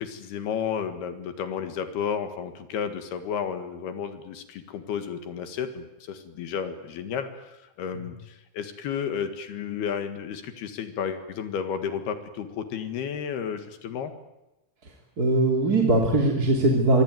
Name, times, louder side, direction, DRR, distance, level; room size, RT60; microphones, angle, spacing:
voice 1, 0.0-14.1, left 7 dB, 75° left, 8 dB, 3.7 m, -32 dB
voice 2, 15.2-17.0, right 2 dB, 25° right, 1 dB, 3.0 m, -21 dB
24.5 x 24.0 x 9.5 m, 0.94 s
omnidirectional pair, 4.6 m